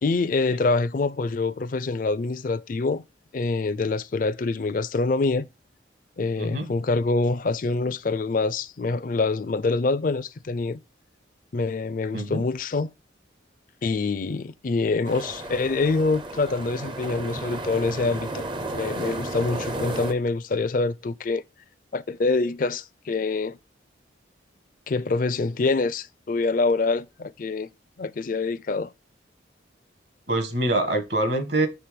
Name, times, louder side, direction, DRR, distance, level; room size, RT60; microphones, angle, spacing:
voice 1, 0.0-3.0 3.3-5.5 6.2-10.8 11.5-12.9 13.8-18.4 18.7-21.4 21.9-23.6 24.9-27.7 28.0-28.9, left 3 dB, 45° left, 0.4 m, -25 dB
voice 2, 6.4-6.7 12.1-12.4 30.3-31.7, right 1 dB, 65° right, 1.5 m, -25 dB
sound 1, 15.0-20.1, right 2 dB, 25° right, 0.5 m, -33 dB
6.0 x 3.4 x 5.1 m
head